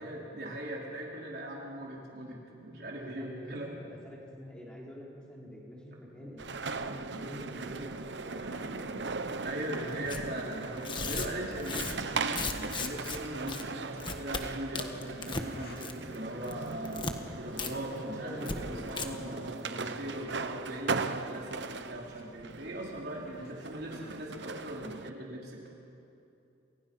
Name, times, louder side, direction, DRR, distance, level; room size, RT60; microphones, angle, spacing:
voice 1, 0.0-3.7 8.4-8.6 9.4-17.0 17.4-25.7, right 1 dB, 60° right, -3 dB, 4.6 m, -40 dB
voice 2, 3.0-3.7 4.0-6.4 6.8-9.1 18.0-19.9, equal, 5° left, -5 dB, 5.1 m, -46 dB
sound 1, 6.4-25.1, right 4 dB, 80° right, 1.0 m, -39 dB
sound 2, 9.8-10.9 11.3-11.4 12.0-12.6 13.9-14.2 15.4-15.9 16.4-16.6 17.5-17.8 18.2-20.5 22.0-22.2 23.2-23.5, left 1 dB, 55° left, 2.5 m, -54 dB
Tearing, 10.1-10.2 10.8-13.2 13.5-13.6 14.0-14.4 14.8-15.5 15.8-16.2 16.4-17.1 17.6-17.7 18.0-18.1 18.4-18.6 18.9-19.1, left 4 dB, 25° left, 1.4 m, -36 dB
28.5 x 28.0 x 5.8 m, 2.7 s
head